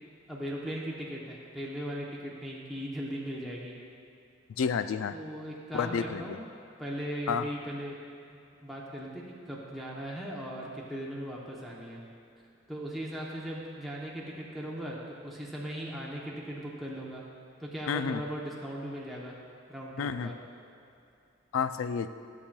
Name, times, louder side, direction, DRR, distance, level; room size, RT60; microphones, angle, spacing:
voice 1, 0.3-3.8 5.1-6.4 6.8-8.0 8.3-12.0 12.7-17.2 17.6-19.4 19.7-20.4, equal, ahead, -5 dB, 0.7 m, -38 dB
voice 2, 4.6-5.2 5.7-6.2 7.3-7.4 17.9-18.2 20.0-20.3 21.5-22.1, left 6 dB, 85° left, 12 dB, 0.3 m, -30 dB
13.0 x 7.1 x 2.2 m, 2.6 s
head